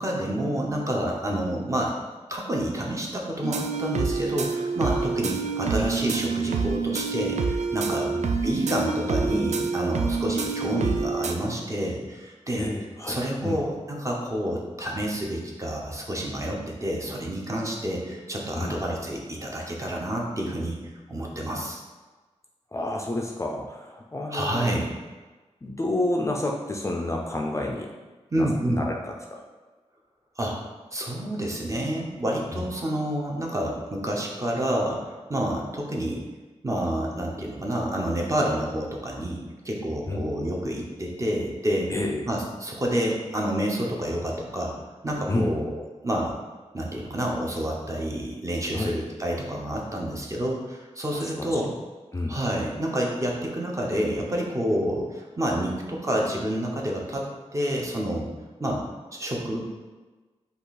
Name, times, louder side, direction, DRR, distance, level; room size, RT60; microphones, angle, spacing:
voice 1, 0.0-1.9 2.3-12.7 13.1-20.8 21.1-21.8 24.3-24.9 28.3-28.8 30.4-30.6 30.9-36.2 36.6-39.4 39.6-41.9 42.3-44.7 45.0-46.3 46.7-51.7 52.3-57.3 57.5-58.3 58.6-58.8 59.1-59.8, right 1 dB, 25° right, -1 dB, 0.7 m, -28 dB
sound 1, 3.4-11.4, right 4 dB, 75° right, 0.4 m, -27 dB
voice 2, 12.6-13.2 13.4-13.6 18.5-18.8 22.7-24.8 25.6-27.9 28.4-29.4 32.5-32.7 40.1-40.3 41.9-42.3 45.3-45.5 48.7-48.9 51.1-51.6 52.1-52.4, left 2 dB, 25° left, 0 dB, 0.4 m, -30 dB
5.2 x 2.4 x 4.1 m, 1.3 s
wide cardioid pair, 125°, 12 cm